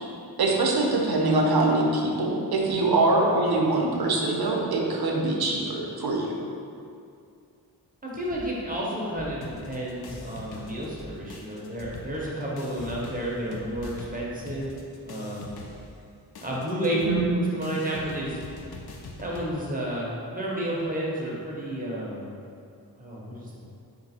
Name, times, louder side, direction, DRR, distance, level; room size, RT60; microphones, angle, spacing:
voice 1, 0.4-6.3 17.0-17.2, right 2 dB, 70° right, -1 dB, 0.7 m, -23 dB
voice 2, 8.0-14.7 15.0-15.5 16.4-18.4 19.2-22.3 23.0-23.6, right 1 dB, 20° right, -5 dB, 0.9 m, -31 dB
sound 1, 8.3-8.7 9.1-9.6 10.0-10.5 10.9-11.4 11.8-12.4 12.8-13.2 13.7-13.9, left 2 dB, 10° left, 0.3 m, -45 dB
sound 2, 9.4-11.0 11.3-19.5, left 3 dB, 70° left, 0.6 m, -43 dB
3.8 x 2.6 x 4.2 m, 2.4 s
wide cardioid pair, 70°, 39 cm